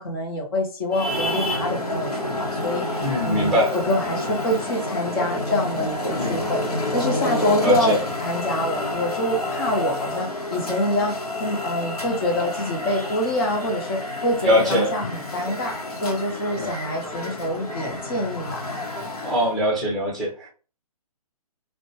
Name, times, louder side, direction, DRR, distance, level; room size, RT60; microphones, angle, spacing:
voice 1, 0.0-2.8 3.2-6.6 6.9-15.7 16.0-18.6, left 1 dB, 40° left, 0.9 m, -26 dB
Traffic noise roadway noise, 0.9-19.6, left 1 dB, 75° left, 0.9 m, -29 dB
voice 2, 3.0-3.7 6.2-6.4 7.6-8.0 14.4-14.9 16.6-16.7 19.2-20.5, left 1 dB, ahead, 0.9 m, -22 dB
2.5 x 2.2 x 2.8 m
figure-of-eight pair, 135°, 19 cm